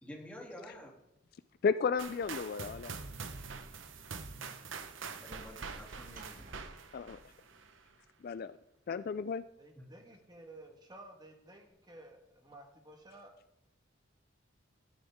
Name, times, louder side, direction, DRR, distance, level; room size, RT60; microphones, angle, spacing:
voice 1, 0.0-1.0 5.2-6.6 9.8-9.9, left 1 dB, 5° left, -2 dB, 2.8 m, -49 dB
voice 2, 1.6-2.9 6.9-7.2 8.2-8.6 8.9-9.4, left 5 dB, 50° left, 14 dB, 0.3 m, -33 dB
sound 1, 2.0-7.8, right 5 dB, 70° right, 1.0 m, -45 dB
Sliding door / Slam, 2.9-8.2, right 3 dB, 40° right, 1.2 m, -61 dB
voice 3, 9.6-13.3, right 1 dB, 20° right, 3 dB, 1.6 m, -54 dB
13.5 x 10.5 x 3.6 m, 0.85 s
head